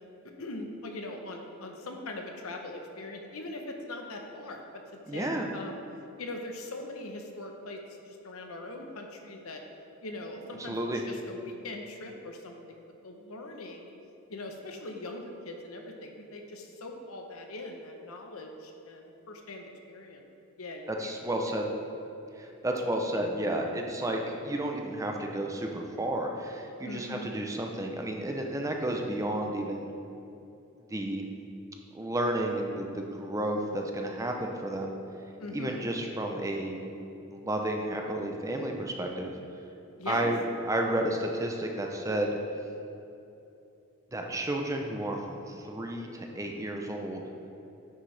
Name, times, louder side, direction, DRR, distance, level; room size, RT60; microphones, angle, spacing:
voice 1, 0.4-5.8 6.2-7.8 8.1-9.6 10.0-13.9 14.3-20.2 20.6-21.6 23.1-23.6 26.8-27.3 35.4-35.8 40.0-40.3, left 2 dB, 80° left, 3 dB, 0.9 m, -41 dB
voice 2, 5.1-5.5 10.6-11.0 21.0-21.7 22.4-29.9 30.9-31.2 31.9-35.0 35.5-36.8 37.3-39.3 40.1-40.4 40.7-42.3 44.1-47.3, right 1 dB, 15° right, 2 dB, 0.6 m, -32 dB
9.3 x 6.4 x 3.3 m, 2.8 s
head